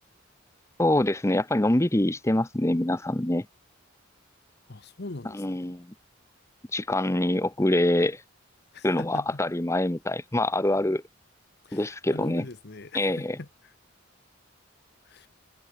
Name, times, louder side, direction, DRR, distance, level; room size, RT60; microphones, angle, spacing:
voice 1, 0.8-3.5 5.3-5.9 6.7-8.2 8.8-11.0 11.7-12.4 12.9-13.4, left 1 dB, 15° left, 0.7 m, -25 dB
voice 2, 4.7-5.6 8.7-9.4 11.6-13.7 15.0-15.3, left 2 dB, 50° left, 1.1 m, -41 dB
head